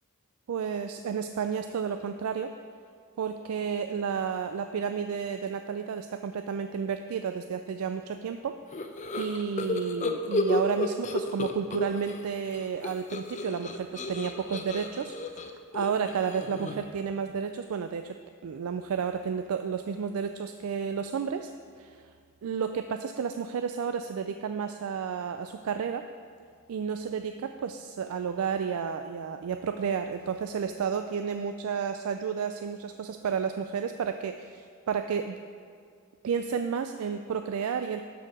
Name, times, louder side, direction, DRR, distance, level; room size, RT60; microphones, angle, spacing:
voice 1, 0.5-2.5 3.2-8.6 9.2-18.2 18.4-21.5 21.8-22.0 22.4-26.1 26.7-35.4 36.2-38.1, right 6 dB, 80° right, 8 dB, 0.3 m, -31 dB
sound 1, 8.7-12.2 12.5-17.0, left 2 dB, 35° left, 0.5 m, -32 dB
12.5 x 4.6 x 4.9 m, 2.3 s
head